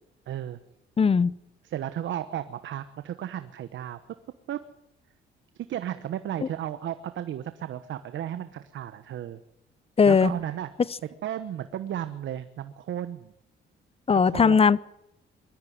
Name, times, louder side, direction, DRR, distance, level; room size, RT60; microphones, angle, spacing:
voice 1, 0.3-0.6 1.6-4.0 4.5-4.6 5.5-9.4 10.0-10.7 11.2-13.3 14.2-14.6, right 11 dB, 70° right, 11 dB, 1.1 m, -34 dB
voice 2, 1.0-1.3 10.0-10.3 14.1-14.8, left 5 dB, 30° left, 21 dB, 0.7 m, -19 dB
21.5 x 13.5 x 9.5 m, 0.82 s
cardioid pair, 90°, 20 cm